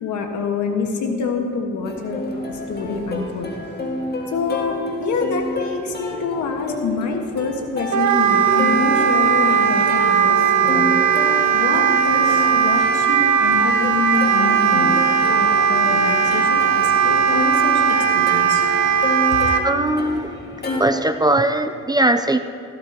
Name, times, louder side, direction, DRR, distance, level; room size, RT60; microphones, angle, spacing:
voice 1, 0.0-3.5 4.3-11.0 11.5-15.0 15.3-18.6, left 4 dB, 75° left, 3 dB, 1.7 m, -26 dB
Plucked string instrument, 1.8-20.8, left 1 dB, 35° left, 2.0 m, -30 dB
Wind instrument woodwind instrument, 7.9-19.6, right 7 dB, 70° right, 0.9 m, -17 dB
voice 2, 19.6-20.3 20.8-22.4, right 1 dB, 15° right, 9 dB, 0.5 m, -19 dB
16.0 x 12.5 x 3.0 m, 2.6 s
cardioid pair, 90°, 30 cm